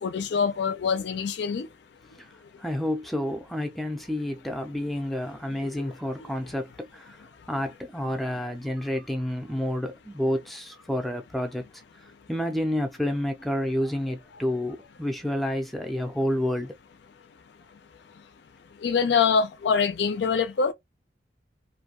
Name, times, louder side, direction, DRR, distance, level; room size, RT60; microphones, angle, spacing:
voice 1, 0.0-1.7 18.8-20.7, left 6 dB, 60° left, 0.4 m, -24 dB
voice 2, 2.6-7.2 7.5-11.6 12.3-16.7, left 1 dB, ahead, 0.4 m, -29 dB
2.5 x 2.2 x 2.8 m
head